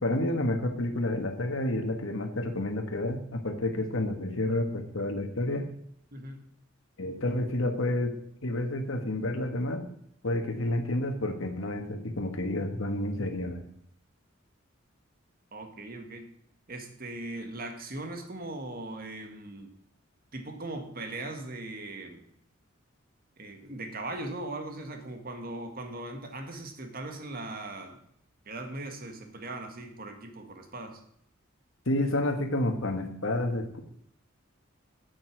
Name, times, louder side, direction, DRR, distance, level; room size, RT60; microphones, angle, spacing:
voice 1, 0.0-5.7 7.0-8.1 8.4-9.8 10.2-13.6 31.8-33.8, left 1 dB, 80° left, 5 dB, 1.6 m, -30 dB
voice 2, 6.1-6.5 15.5-16.3 16.7-19.7 20.3-22.2 23.4-28.0 28.5-31.0, right 2 dB, 50° right, 5 dB, 1.8 m, -39 dB
8.6 x 7.9 x 6.2 m, 0.72 s
head